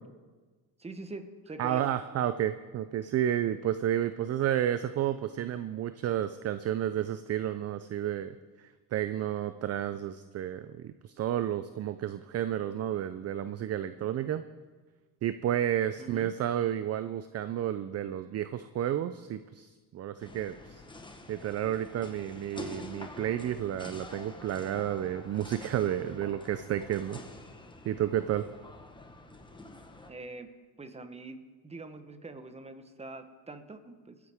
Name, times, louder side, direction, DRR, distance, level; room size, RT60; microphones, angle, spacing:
voice 1, 0.8-1.9 16.0-16.3 30.1-30.5 30.8-34.2, right 3 dB, 15° right, 9 dB, 1.2 m, -44 dB
voice 2, 1.6-14.4 15.2-20.8 21.3-27.2 27.8-28.5, right 11 dB, 35° right, 12 dB, 0.5 m, -31 dB
sound 1, 20.2-30.1, left 2 dB, 10° left, 1.2 m, -47 dB
21.0 x 9.8 x 3.6 m, 1.3 s
supercardioid pair, 100°, 44 cm